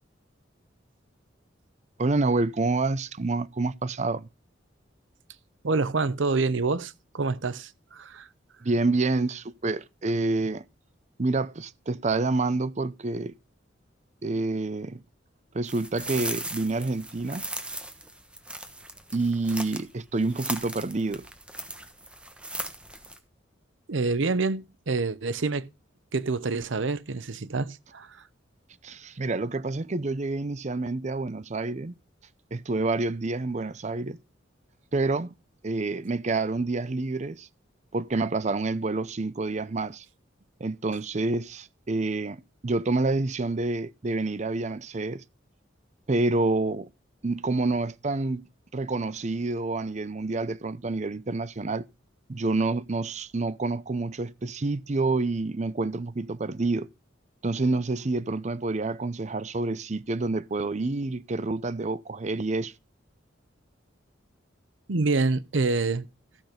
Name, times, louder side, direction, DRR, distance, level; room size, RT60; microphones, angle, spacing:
voice 1, 2.0-4.3 8.6-10.6 11.2-13.3 14.2-15.0 15.5-17.4 19.1-21.3 28.8-31.9 32.5-34.2 34.9-35.3 35.6-37.5 37.9-40.0 40.6-42.4 42.6-45.2 46.1-46.9 47.2-48.4 48.7-51.9 52.3-56.9 57.4-62.7, right 3 dB, 40° right, 0.6 m, -28 dB
voice 2, 5.6-8.3 23.9-25.7 26.1-28.2 64.9-66.1, right 3 dB, 80° right, 0.8 m, -27 dB
sound 1, 15.7-19.9 20.2-23.2, right 1 dB, 5° right, 1.2 m, -38 dB
14.5 x 6.1 x 5.1 m
head